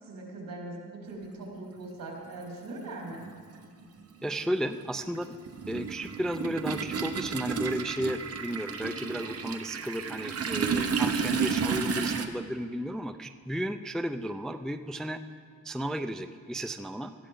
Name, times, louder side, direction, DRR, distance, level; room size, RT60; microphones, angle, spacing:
voice 1, 0.0-3.2, right 2 dB, 80° right, -3 dB, 4.3 m, -41 dB
Toilet flush, 1.8-1.9 3.1-3.3 3.6-12.3, right 5 dB, 45° right, 1.0 m, -32 dB
voice 2, 4.2-5.3 5.7-15.2 15.6-17.1, equal, ahead, 9 dB, 0.3 m, -33 dB
18.5 x 14.0 x 3.8 m, 2.2 s
wide cardioid pair, 140°, 34 cm